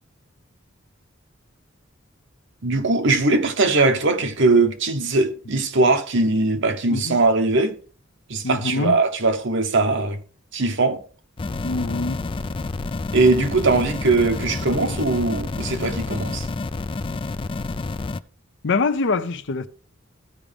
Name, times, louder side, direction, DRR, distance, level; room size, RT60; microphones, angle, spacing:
voice 1, 2.6-7.8 8.3-10.2 10.5-11.0 13.1-16.5, right 3 dB, 65° right, 1.1 m, -20 dB
voice 2, 8.4-9.0 11.6-12.2 18.6-19.7, left 3 dB, 60° left, 0.7 m, -24 dB
sound 1, 11.4-18.2, left 3 dB, 25° left, 0.4 m, -29 dB
15.0 x 5.0 x 3.5 m
head